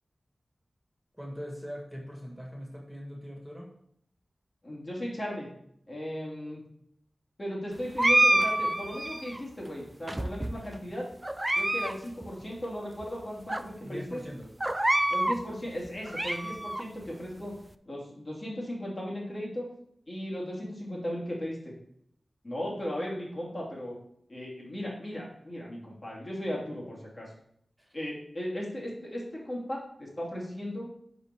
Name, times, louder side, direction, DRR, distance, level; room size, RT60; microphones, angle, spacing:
voice 1, 1.2-3.7 10.1-10.2 13.8-14.5 27.8-28.0, equal, ahead, -2 dB, 2.1 m, -41 dB
voice 2, 4.6-5.5 5.9-6.6 7.4-11.1 11.6-14.2 15.1-17.5 17.9-19.7 20.1-21.7 22.4-24.0 24.3-27.3 27.9-30.9, equal, 40° left, -5 dB, 2.3 m, -36 dB
sound 1, 8.0-9.4 10.1-10.7 11.2-11.9 12.2-12.3 13.0-13.1 13.5-13.6 14.6-15.4 15.9-16.8, right 1 dB, 20° right, 0.3 m, -26 dB
5.1 x 4.5 x 4.7 m, 0.72 s
cardioid pair, 55°, 0 cm